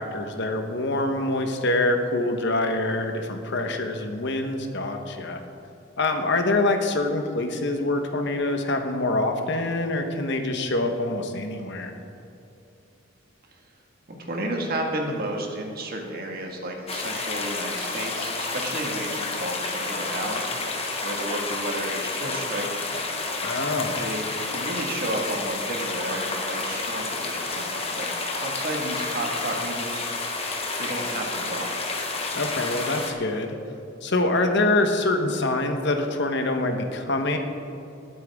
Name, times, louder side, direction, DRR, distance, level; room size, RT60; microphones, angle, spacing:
voice 1, 0.0-5.4 6.0-11.9 23.4-24.0 32.3-33.6 34.0-37.4, left 2 dB, 60° left, 5 dB, 1.2 m, -25 dB
voice 2, 14.1-23.0 24.0-28.1 28.4-30.1 30.8-31.9, right 1 dB, 50° right, 1 dB, 1.9 m, -32 dB
sound 1, 16.9-33.1, left 3 dB, 30° left, 1.3 m, -30 dB
20.0 x 9.0 x 3.7 m, 2.7 s
head